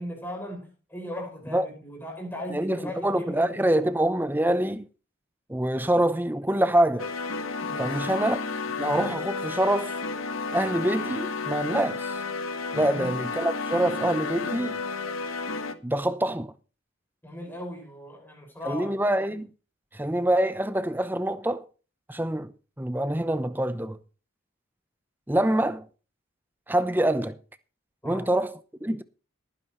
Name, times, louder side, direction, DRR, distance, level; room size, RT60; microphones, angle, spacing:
voice 1, 0.0-3.9 7.6-8.3 12.8-13.1 17.2-18.9 28.0-28.3, left 1 dB, 10° left, 5.7 m, -38 dB
voice 2, 2.5-4.9 5.5-7.1 7.8-8.4 8.7-9.9 10.5-12.2 12.7-14.8 15.8-16.5 18.6-19.5 19.9-21.7 22.1-22.5 22.8-24.0 25.3-25.9 26.7-27.4 28.0-29.0, right 1 dB, 10° right, 0.7 m, -25 dB
sound 1, 7.0-15.7, left 4 dB, 85° left, 1.3 m, -32 dB
18.5 x 10.0 x 3.1 m
head